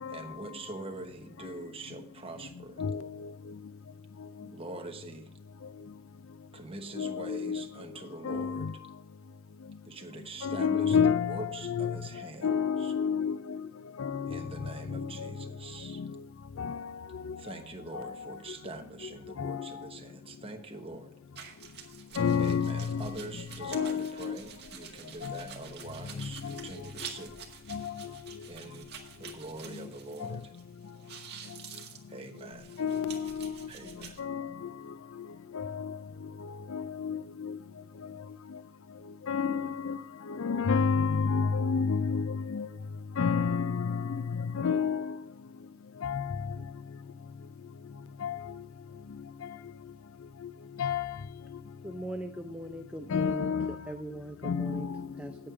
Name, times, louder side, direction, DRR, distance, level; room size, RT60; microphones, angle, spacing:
voice 1, 0.1-2.8 4.4-5.3 6.5-8.7 9.8-12.5 12.8-12.9 14.3-16.0 17.4-21.1 22.4-27.3 28.4-28.9 29.2-30.5 32.1-32.8 33.7-34.2, right 2 dB, 25° right, 1.1 m, -44 dB
voice 2, 2.8-3.3 7.0-7.6 8.2-8.7 10.4-12.0 12.4-13.7 14.0-14.4 14.9-15.3 16.0-16.1 16.6-17.4 17.9-18.1 19.4-19.7 22.2-23.1 23.6-24.4 25.2-25.4 26.4-26.6 27.7-28.1 30.2-30.4 32.8-33.7 34.2-34.5 35.5-36.0 36.7-37.6 39.3-40.0 40.3-42.7 43.2-45.2 46.0-46.5 48.2-48.4 50.8-51.2 53.1-53.7 54.4-55.1, left 6 dB, 65° left, 0.4 m, -30 dB
sound 1, 21.4-30.6 30.9-34.2, right 7 dB, 50° right, 1.9 m, -48 dB
voice 3, 51.8-53.5 53.9-54.9 55.2-55.4, right 1 dB, 5° right, 0.4 m, -40 dB
9.1 x 8.8 x 4.9 m
head